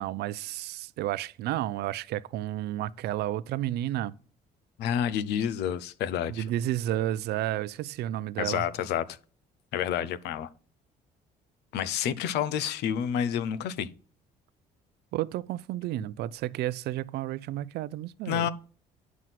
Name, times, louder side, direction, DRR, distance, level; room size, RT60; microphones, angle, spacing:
voice 1, 0.0-4.1 6.3-8.6 15.1-18.5, right 13 dB, 75° right, 0.5 m, -31 dB
voice 2, 4.8-6.4 8.4-9.1 9.7-10.5 11.7-13.9 18.3-18.5, left 9 dB, 80° left, 0.8 m, -29 dB
9.3 x 6.1 x 5.9 m
cardioid pair, 110°, 17 cm